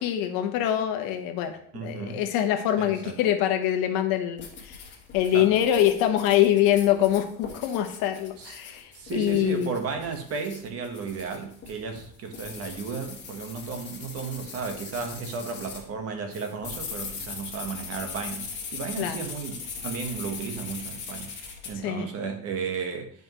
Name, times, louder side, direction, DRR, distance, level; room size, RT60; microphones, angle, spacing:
voice 1, 0.0-4.8 5.1-9.7 19.0-19.2 21.8-22.1, left 11 dB, 70° left, 7 dB, 1.1 m, -24 dB
voice 2, 1.7-2.2 2.8-3.1 5.3-5.6 8.4-8.6 8.9-23.1, right 5 dB, 40° right, 5 dB, 1.2 m, -34 dB
sound 1, 4.4-15.8 16.3-21.7, left 5 dB, 30° left, 1.6 m, -40 dB
10.5 x 5.2 x 3.0 m, 0.63 s
cardioid pair, 155°, 35 cm